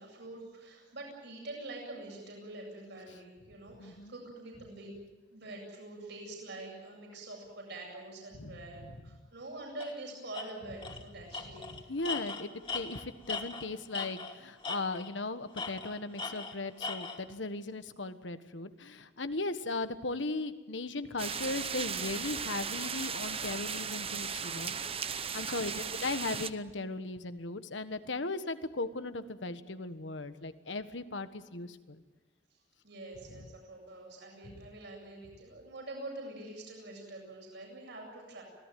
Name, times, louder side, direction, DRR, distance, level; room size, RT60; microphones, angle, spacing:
voice 1, 0.0-4.9 5.3-11.8 25.7-26.0 32.8-38.4, right 2 dB, 65° right, 0 dB, 8.0 m, -45 dB
voice 2, 3.8-4.1 8.3-8.9 11.9-24.8 25.3-32.0 34.5-34.6, left 2 dB, 75° left, 10 dB, 1.5 m, -37 dB
Tools, 9.8-9.9 10.3-10.4 10.8-11.0 11.3-14.4 14.6-15.2 15.5-17.2, left 4 dB, 30° left, 2.7 m, -39 dB
sound 1, 21.2-26.5, right 6 dB, 30° right, 0.9 m, -36 dB
26.0 x 17.5 x 9.3 m, 1.2 s
head